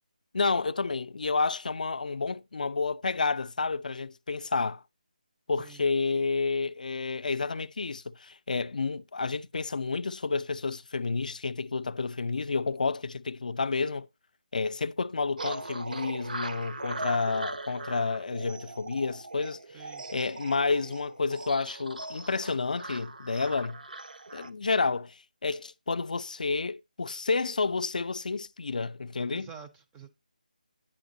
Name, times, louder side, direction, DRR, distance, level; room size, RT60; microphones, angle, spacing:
voice 1, 0.3-4.8 5.5-14.1 14.5-19.6 20.1-23.8 24.3-29.5, left 4 dB, 65° left, 0.3 m, -30 dB
voice 2, 5.6-5.9 19.7-20.3 29.3-30.1, right 6 dB, 10° right, 0.4 m, -47 dB
sound 1, 15.4-24.5, right 2 dB, 80° right, 0.6 m, -40 dB
8.6 x 5.9 x 2.6 m
figure-of-eight pair, 165°, 5 cm